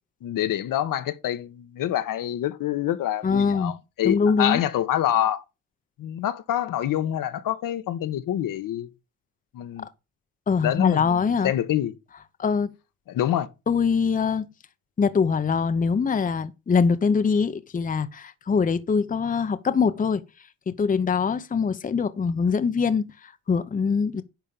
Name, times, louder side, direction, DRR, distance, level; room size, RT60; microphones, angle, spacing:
voice 1, 0.2-5.4 6.0-8.9 9.5-9.8 10.6-11.2 11.4-11.9 13.1-13.5, left 12 dB, 65° left, 1.1 m, -26 dB
voice 2, 3.2-3.7 4.0-4.6 10.5-11.5 12.4-12.7 13.7-14.5 15.0-20.2 20.8-24.2, left 5 dB, 25° left, 0.8 m, -23 dB
10.5 x 3.7 x 6.8 m
cardioid pair, 85°, 35 cm